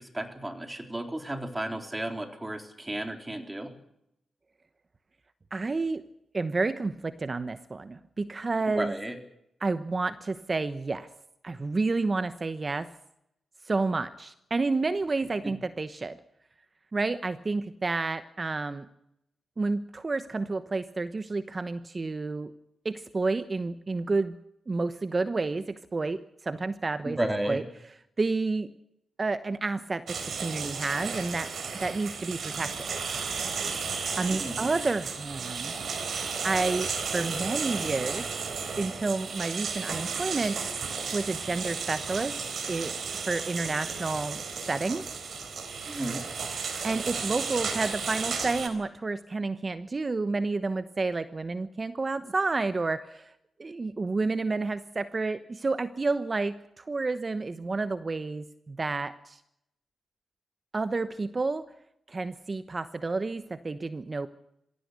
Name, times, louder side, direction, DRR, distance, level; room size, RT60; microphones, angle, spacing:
voice 1, 0.0-3.7 8.8-9.2 15.4-15.5 27.1-27.6 34.3-34.6 45.9-46.2, right 1 dB, 15° right, 6 dB, 3.9 m, -33 dB
voice 2, 5.5-6.0 6.3-8.9 9.6-11.1 11.4-12.9 13.6-16.2 16.9-18.9 19.6-22.5 22.8-24.3 24.7-27.2 27.4-27.6 28.2-28.7 29.2-31.5 31.7-32.9 34.1-35.7 36.4-38.3 38.8-40.6 41.1-42.4 42.7-42.9 43.3-44.4 44.7-45.0 46.8-53.3 53.6-59.4 60.7-61.6 62.1-64.3, right 3 dB, 35° right, 12 dB, 1.0 m, -30 dB
sound 1, 30.1-48.7, right 5 dB, 65° right, 4.0 m, -33 dB
22.0 x 16.5 x 8.3 m, 0.80 s
cardioid pair, 60°, 0 cm